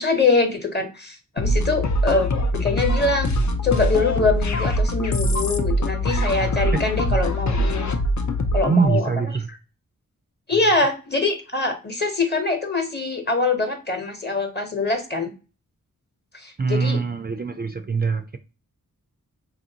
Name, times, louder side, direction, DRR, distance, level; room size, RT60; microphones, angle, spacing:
voice 1, 0.0-3.3 3.6-7.9 8.5-9.1 10.5-15.3 16.3-17.0, left 3 dB, 30° left, 0.9 m, -23 dB
sound 1, 1.4-8.8, left 1 dB, 55° left, 0.5 m, -23 dB
voice 2, 8.7-9.5 16.6-18.4, right 4 dB, 30° right, 0.3 m, -23 dB
4.2 x 2.5 x 2.8 m
wide cardioid pair, 70°, 34 cm